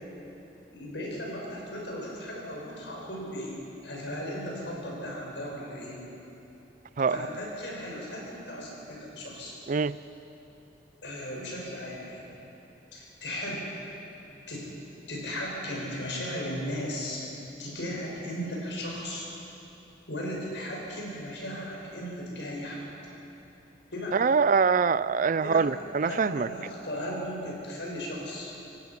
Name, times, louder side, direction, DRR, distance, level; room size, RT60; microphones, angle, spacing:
voice 1, 0.7-6.0 7.0-9.5 11.0-12.3 12.9-13.7 14.5-14.6 15.1-17.2 17.6-19.2 20.1-22.8 23.9-24.3 25.3-28.5, equal, 75° left, -2 dB, 6.0 m, -36 dB
voice 2, 24.1-26.5, right 5 dB, 45° right, 16 dB, 0.4 m, -24 dB
26.5 x 17.5 x 5.9 m, 2.9 s
head